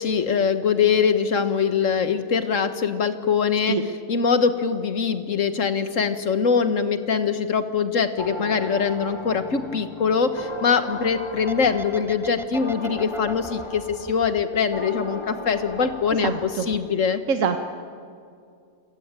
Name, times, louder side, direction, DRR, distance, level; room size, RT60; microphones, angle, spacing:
voice 1, 0.0-3.8 4.1-17.2, left 6 dB, 65° left, 10 dB, 1.7 m, -23 dB
sound 1, 8.2-16.9, left 1 dB, 20° left, 1.3 m, -37 dB
sound 2, 11.5-15.2 15.5-16.4 16.7-16.9, equal, 5° right, 0.5 m, -37 dB
voice 2, 16.2-16.7 17.3-17.6, right 6 dB, 65° right, 7 dB, 1.6 m, -24 dB
29.0 x 21.5 x 9.0 m, 2.3 s
omnidirectional pair, 1.5 m